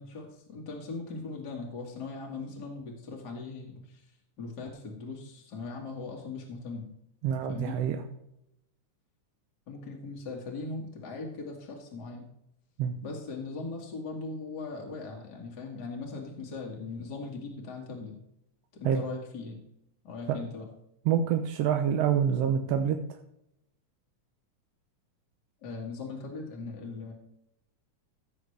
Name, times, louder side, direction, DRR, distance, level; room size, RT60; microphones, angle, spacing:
voice 1, 0.0-4.1 4.4-6.9 7.5-7.8 9.7-12.3 13.0-18.2 18.7-19.6 20.0-20.7 25.6-27.1, left 3 dB, 40° left, -1 dB, 1.9 m, -39 dB
voice 2, 7.2-8.0 12.8-12.9 18.8-19.0 20.3-20.4 21.1-23.0, right 8 dB, 70° right, 5 dB, 1.6 m, -26 dB
15.0 x 6.2 x 3.3 m, 0.80 s
omnidirectional pair, 3.5 m